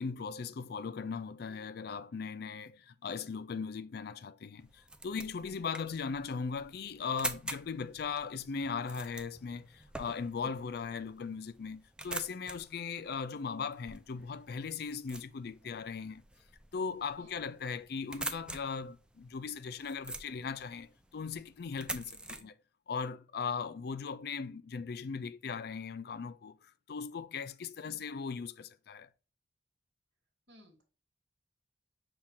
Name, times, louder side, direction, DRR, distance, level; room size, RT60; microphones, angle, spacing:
voice 1, 0.0-16.2 16.7-22.5 22.9-29.1, left 5 dB, 60° left, 0.4 m, -38 dB
sound 1, 4.6-22.4, right 2 dB, 5° right, 0.4 m, -46 dB
voice 2, 30.5-30.8, equal, 75° right, 1.4 m, -59 dB
5.8 x 2.4 x 3.5 m
head